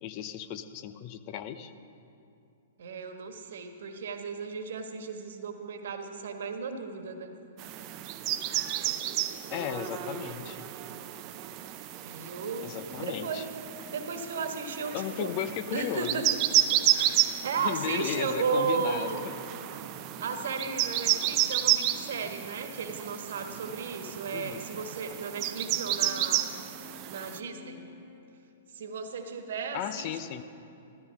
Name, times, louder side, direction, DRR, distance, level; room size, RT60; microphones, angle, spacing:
voice 1, 0.0-1.7 9.5-10.7 12.6-13.4 14.9-16.2 17.6-19.2 24.3-24.6 29.7-30.4, left 10 dB, 40° left, 11 dB, 0.7 m, -35 dB
voice 2, 2.8-7.3 12.0-13.5 13.9-15.4 15.7-16.3 16.7-19.2 20.2-26.5 27.0-27.8 28.7-30.1, right 5 dB, 60° right, 6 dB, 1.5 m, -35 dB
sound 1, 7.6-27.4, right 13 dB, 35° right, 0.6 m, -31 dB
sound 2, 15.2-28.2, left 4 dB, 5° left, 2.6 m, -55 dB
15.0 x 13.0 x 5.4 m, 2.6 s
figure-of-eight pair, 110°, 0 cm